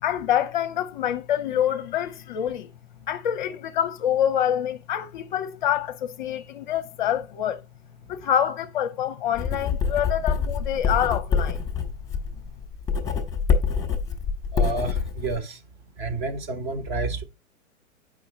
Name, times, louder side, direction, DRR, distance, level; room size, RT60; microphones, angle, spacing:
voice 1, 0.0-2.7 3.1-7.6 8.1-11.6, left 10 dB, 35° left, 0.6 m, -26 dB
Writing, 9.3-15.4, left 5 dB, 10° left, 1.0 m, -26 dB
voice 2, 14.5-15.6 16.0-17.2, right 3 dB, 35° right, 1.1 m, -29 dB
7.9 x 5.0 x 3.3 m
figure-of-eight pair, 115°, 41 cm